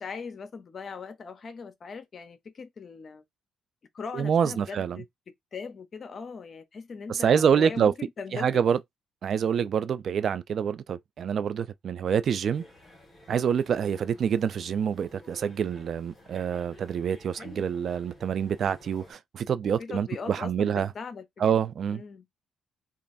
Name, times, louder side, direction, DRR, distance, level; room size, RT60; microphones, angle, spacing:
voice 1, 0.0-3.2 3.9-5.1 5.5-8.6 13.7-14.0 17.4-17.7 19.6-21.6 21.9-22.3, left 5 dB, 45° left, 0.6 m, -40 dB
voice 2, 4.1-5.0 7.1-7.9 8.3-8.8 9.2-12.6 13.3-20.9 21.4-22.0, right 7 dB, 60° right, 0.3 m, -26 dB
sound 1, 12.4-19.1, left 1 dB, 30° left, 1.5 m, -53 dB
3.0 x 2.4 x 2.5 m
cardioid pair, 90°, 0 cm